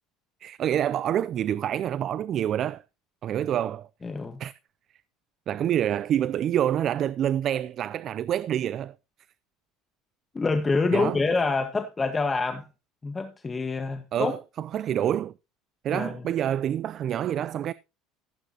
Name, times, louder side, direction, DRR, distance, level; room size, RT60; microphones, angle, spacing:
voice 1, 0.4-2.8 3.2-3.9 4.4-4.5 5.5-8.9 10.9-11.2 14.1-15.3 15.8-17.7, right 10 dB, 45° right, 0.5 m, -27 dB
voice 2, 4.0-4.4 10.3-12.7 13.0-14.3 15.9-16.2, left 3 dB, 20° left, 1.4 m, -26 dB
16.0 x 9.0 x 2.9 m
supercardioid pair, 105°, 0 cm